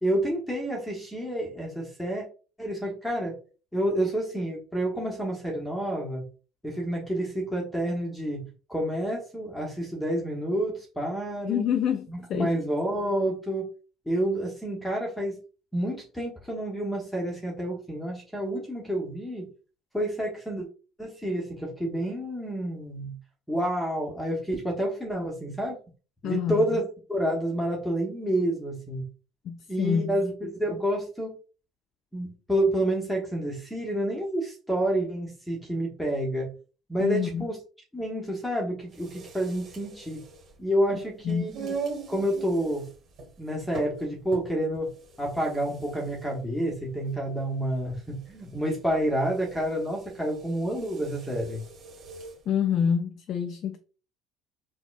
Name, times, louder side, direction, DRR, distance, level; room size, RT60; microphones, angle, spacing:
voice 1, 0.0-2.2 2.6-3.4 3.7-6.2 6.6-11.7 12.1-13.7 14.1-15.4 15.7-19.5 19.9-20.7 21.0-23.2 23.5-25.8 26.2-26.8 27.1-29.1 29.7-31.3 32.1-36.5 36.9-37.6 37.9-40.2 40.6-41.7 42.1-42.9 43.4-44.9 45.2-51.6, right 1 dB, 5° left, 1.1 m, -29 dB
voice 2, 11.4-12.5 26.2-26.8 29.4-30.2 37.0-37.4 40.9-41.5 52.5-53.8, left 8 dB, 55° left, 0.3 m, -27 dB
sound 1, 38.8-52.4, right 4 dB, 50° right, 1.4 m, -42 dB
4.0 x 2.2 x 2.5 m
hypercardioid pair, 65°, 0 cm